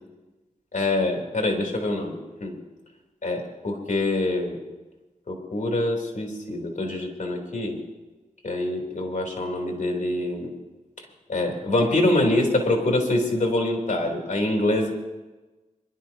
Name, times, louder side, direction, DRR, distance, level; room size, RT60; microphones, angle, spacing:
voice 1, 0.7-2.6 3.2-4.6 5.3-7.8 8.4-10.5 11.0-14.9, left 1 dB, 60° left, 1 dB, 3.9 m, -25 dB
26.0 x 12.5 x 3.0 m, 1.1 s
cardioid pair, 65°, 15 cm